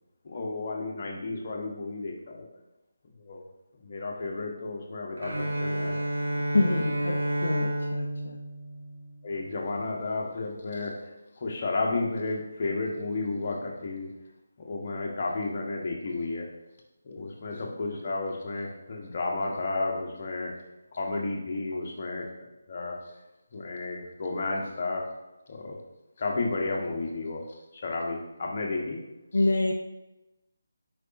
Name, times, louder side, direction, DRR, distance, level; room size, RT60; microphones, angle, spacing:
voice 1, 0.2-2.4 3.2-3.4 3.8-6.0 6.9-7.2 9.2-11.1 11.4-14.1 14.6-16.5 17.0-20.6 20.9-22.3 22.7-23.0 23.5-25.1 25.5-25.8 26.2-29.0 29.3-29.5, left 3 dB, 35° left, -1 dB, 1.1 m, -32 dB
Bowed string instrument, 5.2-9.3, right 1 dB, 60° right, 1.5 m, -30 dB
voice 2, 6.5-8.4 29.3-29.7, left 2 dB, 60° left, 2 dB, 0.5 m, -26 dB
8.2 x 5.2 x 2.6 m, 0.97 s
figure-of-eight pair, 155°, 0 cm